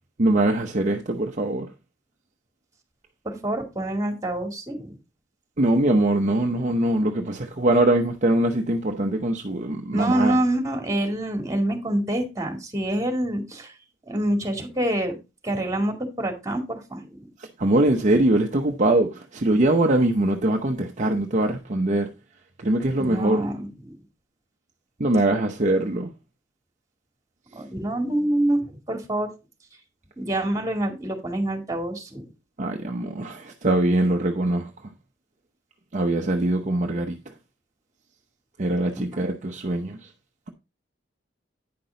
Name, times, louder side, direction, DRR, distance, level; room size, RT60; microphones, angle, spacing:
voice 1, 0.2-1.7 5.6-10.4 17.6-22.1 22.6-23.5 25.0-26.1 32.6-34.7 35.9-37.2 38.6-40.1, right 1 dB, 40° right, 0.8 m, -22 dB
voice 2, 3.2-5.0 9.9-13.7 14.1-15.2 15.4-17.2 23.0-24.0 27.5-29.3 30.2-32.3 39.0-39.2, right 1 dB, 20° right, 2.1 m, -26 dB
9.5 x 6.0 x 3.9 m
head